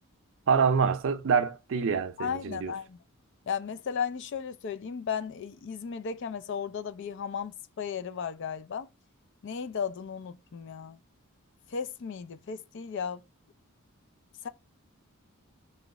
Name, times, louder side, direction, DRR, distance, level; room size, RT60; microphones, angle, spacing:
voice 1, 0.5-2.7, right 6 dB, 60° right, 0.4 m, -26 dB
voice 2, 2.2-3.0 3.5-8.9 9.4-11.0 11.7-13.2 14.4-14.5, left 6 dB, 55° left, 0.4 m, -35 dB
3.0 x 3.0 x 3.5 m
head